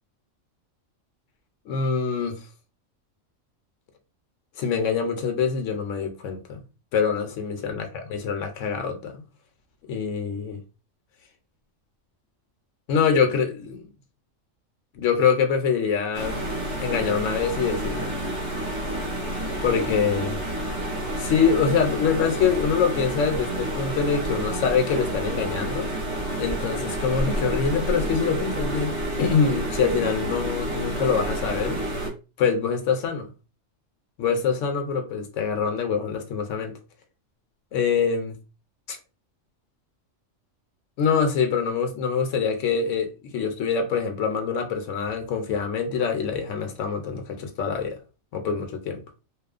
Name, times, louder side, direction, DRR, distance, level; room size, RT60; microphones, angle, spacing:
voice 1, 1.7-2.4 4.6-6.6 6.9-7.8 8.2-9.2 9.9-10.6 12.9-13.8 14.9-16.5 16.8-18.1 19.6-20.3 21.2-25.9 26.4-31.8 32.4-33.3 34.2-36.7 37.7-38.4 38.9-39.0 41.0-48.0 48.3-49.0, left 6 dB, 75° left, 0.9 m, -24 dB
sound 1, 16.1-32.1, right 1 dB, 30° right, 0.6 m, -29 dB
2.9 x 2.0 x 2.4 m
omnidirectional pair, 1.4 m